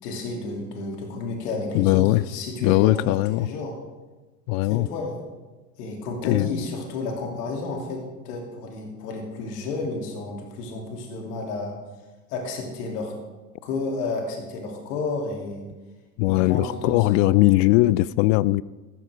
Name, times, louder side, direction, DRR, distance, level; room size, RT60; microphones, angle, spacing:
voice 1, 0.0-3.7 4.6-5.2 5.8-11.8 12.3-13.1 13.6-15.7 16.3-17.5, left 3 dB, 70° left, 3.0 m, -31 dB
voice 2, 1.7-2.2 2.6-3.5 4.5-4.9 6.2-6.5 16.2-18.6, left 18 dB, 50° left, 0.5 m, -20 dB
14.5 x 13.0 x 3.6 m
hypercardioid pair, 80°, 50 cm